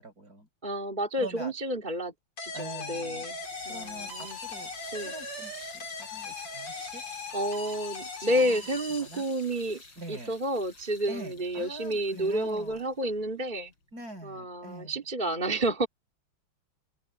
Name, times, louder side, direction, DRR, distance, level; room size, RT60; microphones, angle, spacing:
voice 1, 0.0-0.5 1.2-1.5 2.5-3.3 3.7-4.7 5.0-7.0 8.2-8.6 9.0-9.2 10.0-10.3 11.1-12.8 13.9-14.9, right 2 dB, 45° right, 5.8 m, -43 dB
voice 2, 0.6-2.1 2.4-3.4 3.6-4.4 4.9-5.1 7.3-9.8 10.1-13.7 14.2-15.9, right 1 dB, 20° right, 2.9 m, -30 dB
sound 1, 2.4-9.7, left 4 dB, 85° left, 5.7 m, -39 dB
sound 2, 3.2-14.3, left 3 dB, 55° left, 5.7 m, -53 dB
open air
omnidirectional pair, 2.4 m